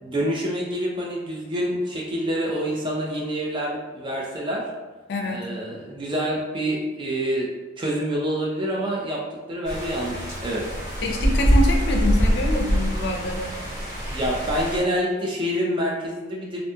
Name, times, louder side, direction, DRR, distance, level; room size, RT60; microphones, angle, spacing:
voice 1, 0.0-4.7 5.2-7.5 7.8-10.6 14.1-16.6, equal, 25° right, -3 dB, 0.3 m, -27 dB
voice 2, 5.1-5.4 11.0-13.5, left 1 dB, 65° left, 2 dB, 0.4 m, -26 dB
sound 1, 9.7-14.8, equal, 50° right, 1.0 m, -24 dB
2.5 x 2.2 x 2.6 m, 1.2 s
head